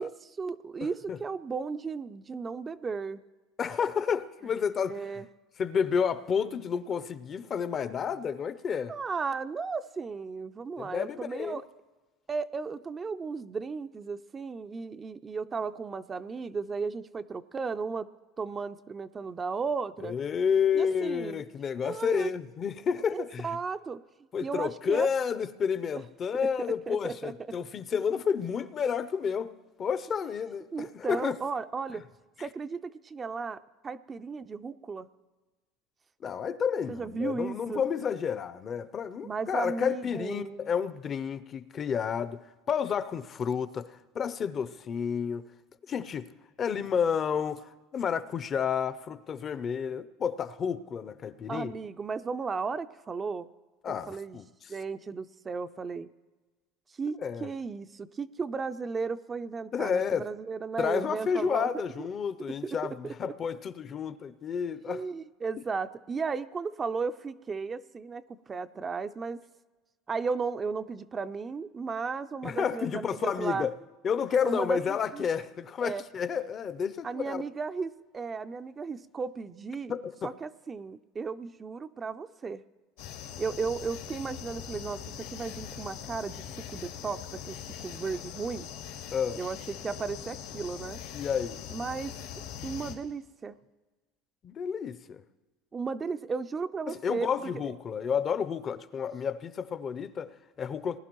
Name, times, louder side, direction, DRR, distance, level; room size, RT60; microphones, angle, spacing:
voice 1, 0.0-3.2 4.8-5.3 8.9-11.6 12.3-18.1 18.4-20.2 20.7-21.4 21.8-22.3 23.1-24.0 24.4-25.1 26.9-27.3 30.7-32.0 32.4-35.1 36.9-37.8 39.2-40.7 51.5-53.5 53.9-54.4 54.7-56.1 57.0-61.7 62.6-62.8 63.0-63.3 64.8-69.4 70.1-73.7 74.4-75.3 75.8-76.0 77.0-80.0 80.2-82.6 83.4-88.7 89.4-91.0 91.7-92.1 92.6-93.6 95.7-97.3, right 5 dB, 20° right, 0.4 m, -35 dB
voice 2, 0.8-1.2 3.6-5.0 5.6-8.9 10.8-11.6 20.0-23.6 24.3-29.5 29.8-31.4 32.4-32.5 36.2-42.4 42.7-45.4 45.9-46.3 46.6-51.7 53.8-54.7 57.2-57.5 59.7-60.3 60.8-65.1 72.4-73.7 74.0-77.4 79.9-80.3 89.1-89.4 91.1-91.6 94.4-95.2 96.9-101.0, left 7 dB, 30° left, 0.5 m, -30 dB
sound 1, 83.0-92.9, left 9 dB, 85° left, 2.1 m, -42 dB
20.0 x 11.0 x 3.0 m
supercardioid pair, 130°, 0 cm